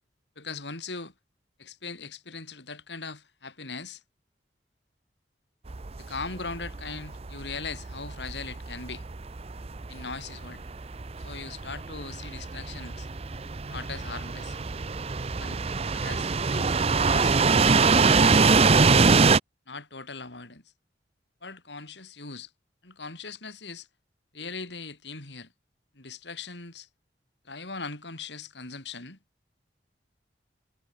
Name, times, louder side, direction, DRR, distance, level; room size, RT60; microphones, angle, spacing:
voice 1, 0.3-1.1 1.6-4.0 6.0-9.0 9.9-10.7 11.2-13.1 13.7-14.6 15.4-15.6 15.9-17.3 17.9-18.4 19.7-20.6 21.4-22.5 22.8-23.9 24.3-25.5 25.9-26.9 27.4-29.2, left 4 dB, 80° left, 5.0 m, -40 dB
sound 1, 5.7-19.4, right 4 dB, 35° right, 0.6 m, -24 dB
head